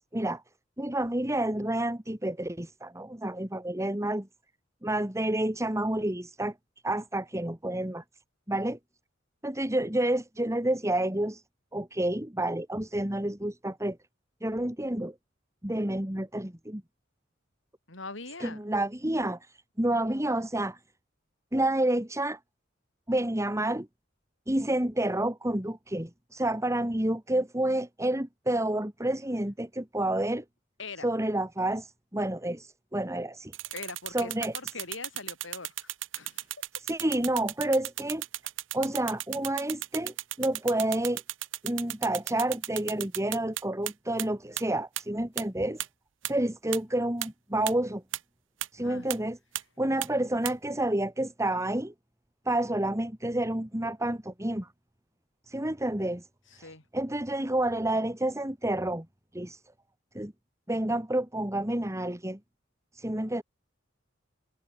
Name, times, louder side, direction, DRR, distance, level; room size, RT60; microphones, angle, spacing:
voice 1, 0.8-4.3 4.8-6.5 6.8-8.0 8.5-8.8 9.4-11.4 11.7-14.0 14.4-15.1 15.6-16.8 18.4-19.4 19.8-20.8 21.5-22.4 23.1-23.9 24.5-30.4 31.0-33.5 34.1-34.5 36.9-38.2 38.7-41.2 41.6-45.8 46.3-48.0 48.7-49.4 49.8-51.9 52.5-54.7 55.5-56.2 56.6-59.1 59.3-59.6 60.1-60.3 60.7-62.4 63.0-63.4, right 1 dB, 15° right, 2.5 m, -29 dB
voice 2, 17.9-18.6 30.8-31.1 33.7-36.5 48.8-49.1 56.5-56.8, left 3 dB, 70° left, 5.8 m, -42 dB
sound 1, 33.5-43.9 44.2-44.3 44.6-44.7 45.0-45.1 45.4-45.5 45.8-45.9 46.2-46.3 46.7-46.8 47.2-47.3 47.7-47.8 48.1-48.2 48.6-48.7 49.1-49.2 49.6-49.7 50.0-50.1 50.5-50.6, right 15 dB, 70° right, 0.9 m, -34 dB
head